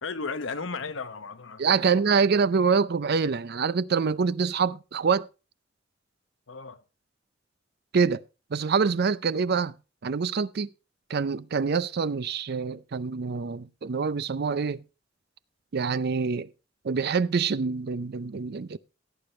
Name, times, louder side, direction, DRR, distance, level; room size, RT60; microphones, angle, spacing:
voice 1, 0.0-2.0 6.5-6.8, left 4 dB, 75° left, 1.1 m, -35 dB
voice 2, 1.6-5.3 7.9-8.2 8.5-9.7 10.0-10.7 11.1-14.8 15.7-16.5 16.8-18.8, right 5 dB, 55° right, 0.5 m, -25 dB
17.0 x 8.7 x 3.2 m
head